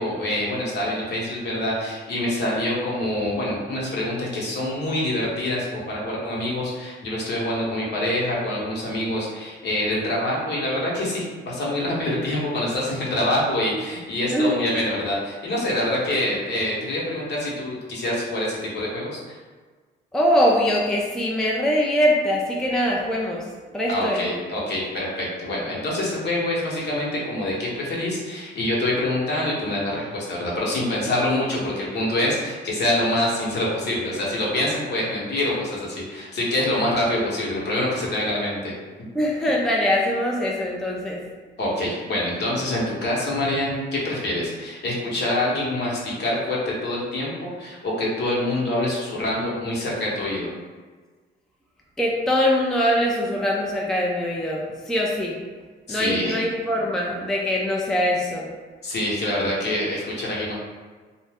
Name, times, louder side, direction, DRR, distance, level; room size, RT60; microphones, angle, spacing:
voice 1, 0.0-19.4 23.9-38.7 41.6-50.5 55.9-56.4 58.8-60.6, left 1 dB, 60° left, -5 dB, 1.0 m, -25 dB
voice 2, 20.1-23.4 23.7-24.2 39.1-41.2 52.0-55.4 55.9-58.5, equal, 5° left, -2 dB, 0.4 m, -22 dB
2.5 x 2.1 x 3.4 m, 1.4 s
cardioid pair, 90°, 20 cm